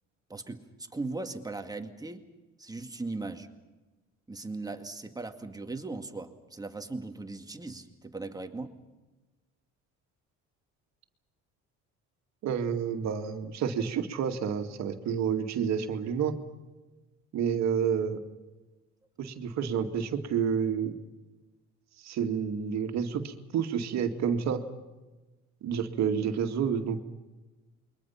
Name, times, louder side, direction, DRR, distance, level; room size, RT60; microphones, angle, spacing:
voice 1, 0.3-2.3 2.6-3.5 4.3-8.8, right 3 dB, 15° right, 6 dB, 2.1 m, -38 dB
voice 2, 12.4-16.4 17.3-18.2 19.2-20.9 22.0-24.6 25.6-27.0, right 7 dB, 65° right, 5 dB, 2.2 m, -29 dB
28.5 x 22.5 x 5.8 m, 1.2 s
cardioid pair, 100°, 29 cm